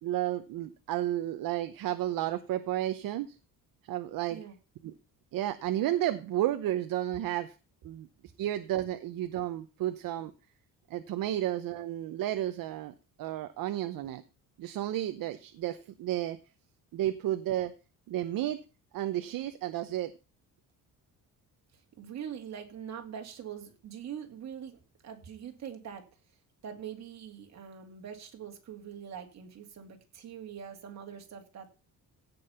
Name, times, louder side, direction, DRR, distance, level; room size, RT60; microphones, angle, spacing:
voice 1, 0.0-3.4 3.8-4.4 4.8-4.9 5.3-7.5 7.8-8.1 8.4-10.3 10.9-12.9 13.2-14.2 14.6-16.4 16.9-17.7 18.1-18.6 18.9-20.1, right 13 dB, 65° right, 9 dB, 0.8 m, -32 dB
voice 2, 21.7-26.0 26.6-31.7, right 8 dB, 50° right, 4 dB, 2.4 m, -43 dB
16.5 x 5.5 x 5.6 m, 0.33 s
cardioid pair, 175°, 36 cm